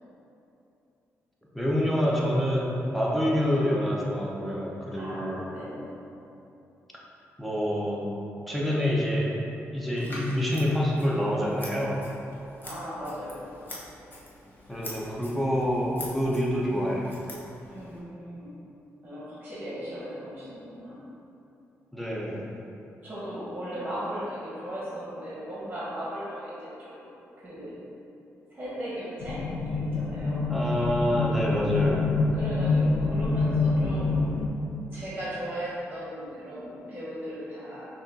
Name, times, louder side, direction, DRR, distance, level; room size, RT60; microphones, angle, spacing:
voice 1, 1.5-5.5 7.4-8.1 8.5-9.3 9.7-12.0 14.7-17.0 21.9-22.5 30.5-32.0, equal, ahead, -5 dB, 0.9 m, -27 dB
voice 2, 4.9-6.0 12.6-13.5 17.7-18.5 19.0-21.0 23.0-27.1 27.4-27.8 28.5-30.5 32.3-34.3 34.9-37.9, equal, 20° right, -9 dB, 1.4 m, -37 dB
Scissors, 10.0-18.0, left 1 dB, 35° left, 1.0 m, -45 dB
sound 1, 29.2-34.5, left 3 dB, 80° left, 0.4 m, -26 dB
5.6 x 2.6 x 2.8 m, 2.8 s
cardioid pair, 65°, 6 cm